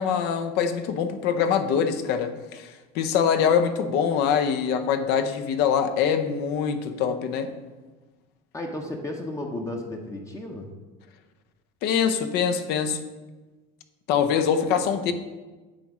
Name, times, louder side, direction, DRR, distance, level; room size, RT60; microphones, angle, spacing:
voice 1, 0.0-7.5 11.8-13.0 14.1-15.1, left 7 dB, 60° left, 9 dB, 0.7 m, -24 dB
voice 2, 8.5-10.7, left 1 dB, 15° left, 2 dB, 0.8 m, -33 dB
8.9 x 3.1 x 6.1 m, 1.2 s
supercardioid pair, 120°, 19 cm